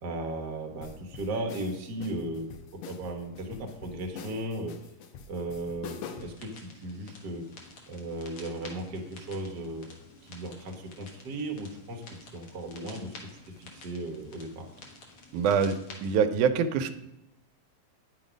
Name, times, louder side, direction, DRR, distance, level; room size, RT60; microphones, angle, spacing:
voice 1, 0.0-4.8 5.3-7.5 7.9-9.9 10.2-12.0 12.3-13.1 13.6-14.7, right 1 dB, 55° right, 3 dB, 1.2 m, -36 dB
sound 1, 0.8-6.4, left 6 dB, 75° left, 2.1 m, -44 dB
sound 2, 6.1-16.1, left 3 dB, 55° left, 2.1 m, -50 dB
voice 2, 15.3-16.9, right 6 dB, 85° right, 8 dB, 2.1 m, -25 dB
9.8 x 5.7 x 5.1 m, 0.91 s
omnidirectional pair, 3.4 m